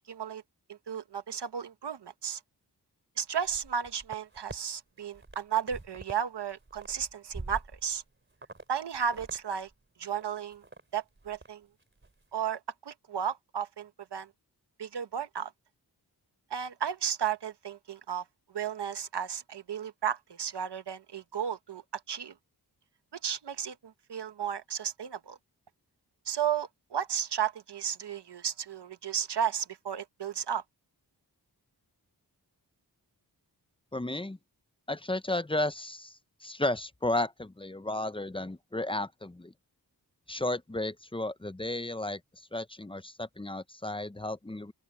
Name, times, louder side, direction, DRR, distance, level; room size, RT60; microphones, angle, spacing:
voice 1, 0.1-0.4 0.7-2.4 3.2-8.0 8.7-9.7 10.0-10.6 10.9-11.7 12.3-14.3 14.8-15.5 16.5-22.3 23.2-25.4 26.3-30.6, right 8 dB, 85° right, 1.1 m, -34 dB
sound 1, 3.4-4.6 5.0-6.2 6.5-8.0 8.4-8.6 8.9-9.4 9.7-9.8 10.2-10.8 11.2-11.5 11.8-12.1, right 2 dB, 30° right, 3.2 m, -45 dB
voice 2, 33.9-34.4 34.9-39.5 40.3-44.7, left 1 dB, 15° left, 0.7 m, -33 dB
open air
wide cardioid pair, 90°, 40 cm